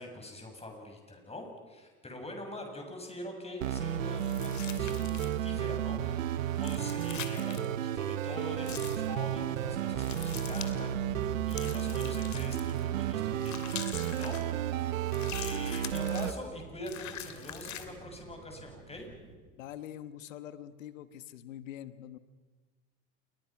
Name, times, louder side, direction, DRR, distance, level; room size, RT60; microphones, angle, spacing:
voice 1, 0.0-14.4 14.8-14.9 15.3-19.1, left 1 dB, 15° left, 3 dB, 7.3 m, -44 dB
sound 1, 3.6-16.3, right 10 dB, 90° right, 1.2 m, -32 dB
sound 2, 4.2-5.5 6.6-7.7 8.6-9.1 10.0-10.7 11.5-12.8 13.4-14.4 15.1-16.4 16.8-17.9, left 10 dB, 45° left, 2.9 m, -43 dB
sound 3, 8.5-19.4, right 5 dB, 70° right, 6.6 m, -50 dB
voice 2, 19.6-22.2, left 11 dB, 85° left, 13 dB, 1.4 m, -44 dB
28.0 x 23.0 x 6.0 m, 1.4 s
hypercardioid pair, 85°, 38 cm